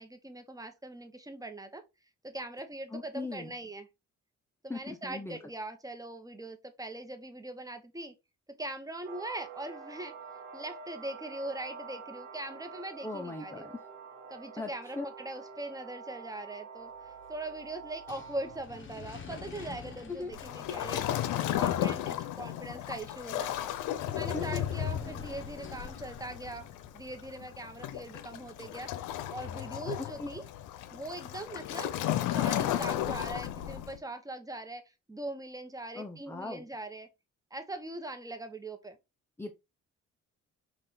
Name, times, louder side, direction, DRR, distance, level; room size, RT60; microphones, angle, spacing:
voice 1, 0.0-1.8 2.2-3.9 4.6-8.1 8.6-10.1 10.5-13.7 14.3-21.0 21.6-23.5 24.1-26.7 26.9-28.9 29.3-30.4 30.9-31.9 32.3-34.8 35.1-37.1 37.5-39.0, right 2 dB, 10° right, 0.9 m, -41 dB
voice 2, 2.9-3.5 4.7-5.4 13.0-13.8 14.6-15.1 20.1-20.3 24.3-24.6 30.0-30.3 35.9-36.6 39.4-39.5, left 3 dB, 10° left, 0.5 m, -39 dB
sound 1, 9.0-18.6, right 5 dB, 80° right, 2.0 m, -47 dB
sound 2, 16.9-30.0, left 5 dB, 40° left, 1.0 m, -50 dB
Waves surf, 20.3-34.0, left 12 dB, 90° left, 0.6 m, -34 dB
5.6 x 2.5 x 3.8 m
cardioid pair, 90°, 30 cm